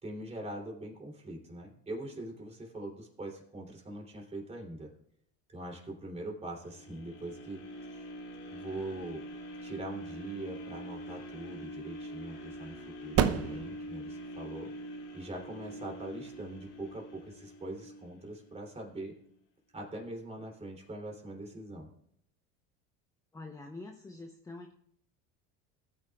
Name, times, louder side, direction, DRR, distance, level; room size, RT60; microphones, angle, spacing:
voice 1, 0.0-4.9 5.5-8.0 8.5-9.2 9.6-14.7 15.1-19.1 19.7-21.9, right 1 dB, 20° right, 0 dB, 3.0 m, -42 dB
sound 1, 6.6-18.7 19.2-19.3, equal, 50° left, 3.4 m, -44 dB
sound 2, 10.6-17.8, right 9 dB, 50° right, 0.8 m, -37 dB
voice 2, 23.3-24.7, left 2 dB, 10° left, 4 dB, 0.8 m, -45 dB
19.5 x 8.7 x 2.4 m, 0.68 s
cardioid pair, 120°, 32 cm